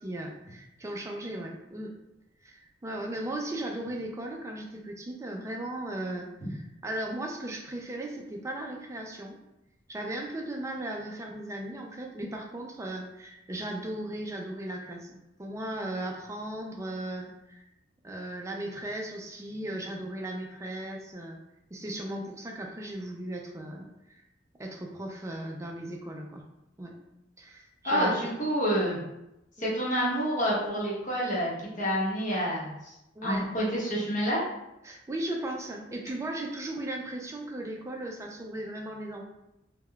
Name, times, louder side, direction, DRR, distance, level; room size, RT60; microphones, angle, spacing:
voice 1, 0.0-1.9 2.4-9.4 9.9-17.6 18.0-21.4 21.7-24.2 24.6-26.4 26.8-26.9 27.4-28.3 29.6-29.8 33.2-33.5 34.8-39.2, right 1 dB, 15° right, 1 dB, 0.3 m, -37 dB
voice 2, 27.8-29.0 29.6-31.5 31.8-32.9 33.2-34.4, equal, 40° left, -6 dB, 0.9 m, -28 dB
3.5 x 2.1 x 2.2 m, 0.90 s
head